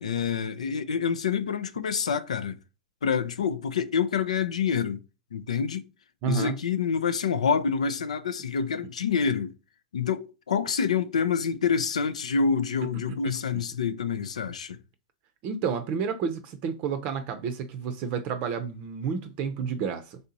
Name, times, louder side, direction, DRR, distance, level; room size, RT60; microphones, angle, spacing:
voice 1, 0.0-2.6 3.0-5.0 5.3-5.8 6.3-9.5 9.9-14.8, left 6 dB, 85° left, 0.5 m, -27 dB
voice 2, 6.2-6.6 13.1-13.2 13.5-13.6 15.4-20.2, right 6 dB, 45° right, 0.5 m, -30 dB
3.5 x 2.8 x 3.9 m
hypercardioid pair, 115°, 3 cm